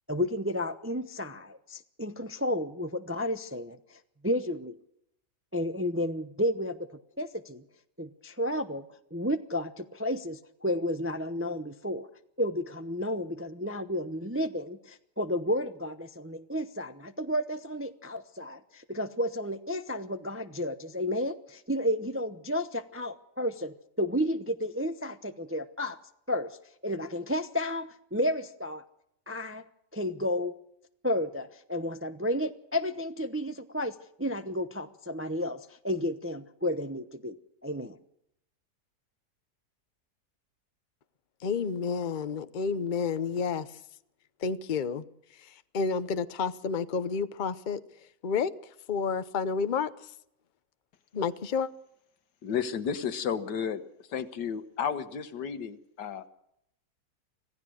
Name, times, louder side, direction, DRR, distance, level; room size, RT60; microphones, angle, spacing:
voice 1, 0.1-4.8 5.5-7.6 8.0-8.8 9.1-12.1 12.4-26.0 26.3-26.6 26.8-28.8 29.3-29.6 29.9-30.5 31.0-37.4 37.6-38.0, left 1 dB, 15° right, 9 dB, 0.5 m, -32 dB
voice 2, 41.4-43.7 44.4-45.0 45.4-47.8 48.2-48.5 48.9-49.9 51.1-51.7, left 5 dB, 40° left, 13 dB, 0.7 m, -30 dB
voice 3, 52.4-53.8 54.1-56.3, left 7 dB, 90° left, 11 dB, 1.8 m, -32 dB
26.0 x 16.0 x 6.4 m, 0.76 s
omnidirectional pair, 1.8 m